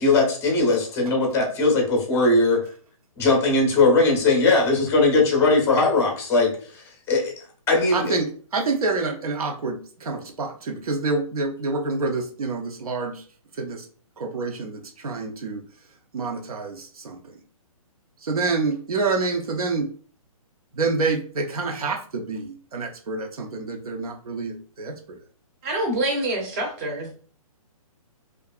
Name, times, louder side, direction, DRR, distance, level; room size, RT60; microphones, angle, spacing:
voice 1, 0.0-2.7 3.2-7.3 7.7-8.2, left 3 dB, 10° left, 0 dB, 0.6 m, -20 dB
voice 2, 7.9-13.2 13.6-13.9 14.2-15.6 16.1-17.4 18.2-19.9 20.7-25.2, right 3 dB, 75° right, 4 dB, 0.6 m, -27 dB
voice 3, 25.6-27.2, right 1 dB, 25° right, 2 dB, 0.7 m, -26 dB
2.6 x 2.4 x 2.3 m, 0.43 s
hypercardioid pair, 140°, 19 cm